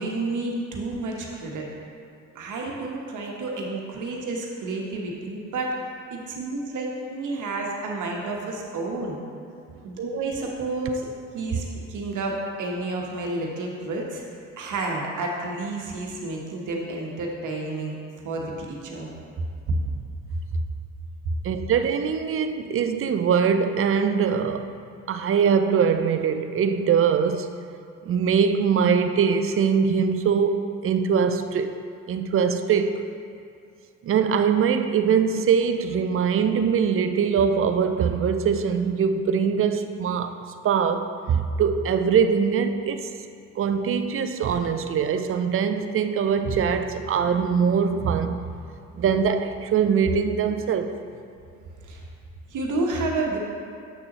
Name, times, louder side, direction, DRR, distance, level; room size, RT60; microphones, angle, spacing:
voice 1, 0.0-1.7 2.3-5.7 6.1-9.2 9.8-11.1 11.3-14.2 14.6-18.0 18.2-19.1 51.8-52.0 52.5-53.4, right 2 dB, 50° right, -1 dB, 1.3 m, -30 dB
voice 2, 21.4-24.7 25.1-27.5 28.1-31.7 32.1-33.1 34.0-40.4 40.6-43.1 43.6-48.4 49.0-50.9, right 6 dB, 35° right, 8 dB, 0.5 m, -22 dB
7.7 x 6.0 x 3.0 m, 2.4 s
hypercardioid pair, 50°, 38 cm